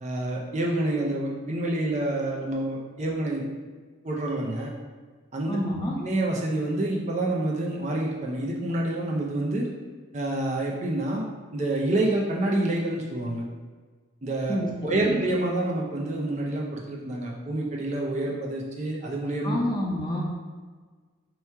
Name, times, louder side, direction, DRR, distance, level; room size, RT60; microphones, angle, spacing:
voice 1, 0.0-3.4 4.0-4.7 5.3-5.6 6.0-9.7 10.1-11.2 11.5-13.4 14.2-19.6, right 1 dB, 35° right, -2 dB, 0.5 m, -28 dB
voice 2, 5.5-6.0 14.5-15.2 19.4-20.2, equal, 20° left, -3 dB, 0.6 m, -28 dB
3.3 x 3.0 x 4.6 m, 1.4 s
head